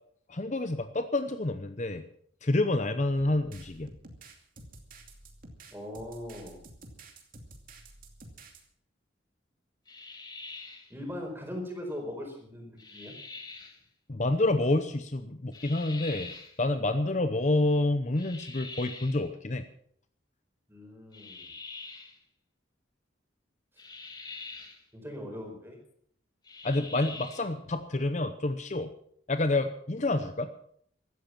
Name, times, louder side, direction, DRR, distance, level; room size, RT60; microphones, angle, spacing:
voice 1, 0.3-2.0 2.4-3.9 14.1-16.3 16.6-19.6 26.6-28.9 29.3-30.5, left 2 dB, 40° left, 9 dB, 0.8 m, -28 dB
sound 1, 3.2-8.6, right 2 dB, 45° right, 2.5 m, -50 dB
voice 2, 5.7-6.6 10.9-13.1 20.7-21.5 24.9-25.8, left 1 dB, 10° right, 2 dB, 4.7 m, -40 dB
sound 2, 9.9-10.9 12.8-13.8 15.5-16.6 18.2-19.2 21.1-22.2 23.8-24.8 26.4-27.5, left 3 dB, 20° left, 2.0 m, -44 dB
16.0 x 13.0 x 5.9 m, 0.64 s
head